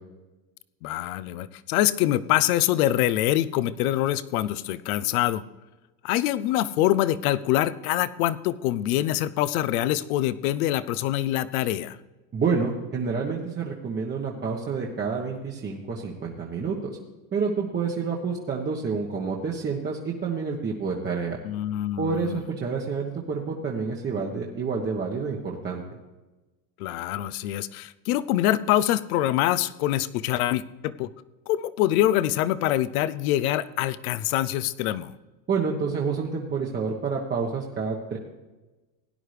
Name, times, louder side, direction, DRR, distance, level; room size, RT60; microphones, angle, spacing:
voice 1, 0.8-5.4 6.0-12.0 21.4-22.4 26.8-31.1 31.5-35.1, left 13 dB, 60° left, 17 dB, 0.7 m, -25 dB
voice 2, 12.3-17.0 17.3-21.4 22.0-25.8 35.5-38.2, right 5 dB, 20° right, -2 dB, 1.2 m, -28 dB
17.5 x 10.0 x 3.3 m, 1.1 s
supercardioid pair, 125°, 49 cm